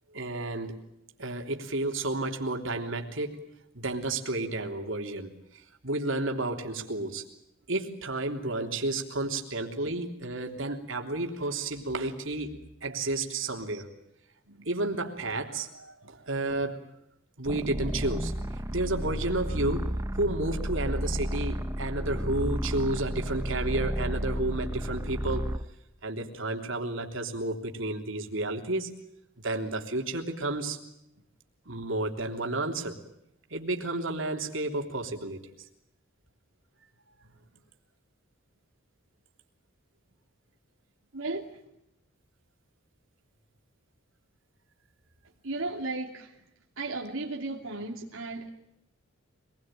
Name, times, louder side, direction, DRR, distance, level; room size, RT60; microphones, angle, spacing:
voice 1, 0.1-0.8 1.2-3.4 3.7-7.2 7.7-12.5 12.8-13.9 14.7-16.8 17.4-18.3 18.7-25.5 26.0-28.9 29.4-30.8 31.7-33.0 33.5-35.4, right 2 dB, 70° right, 3 dB, 3.4 m, -31 dB
sound 1, 17.5-25.7, equal, 15° right, 0.9 m, -32 dB
voice 2, 41.1-41.6 45.4-46.4 46.8-48.5, right 2 dB, 85° right, 0 dB, 2.8 m, -35 dB
26.0 x 21.0 x 9.1 m, 0.83 s
head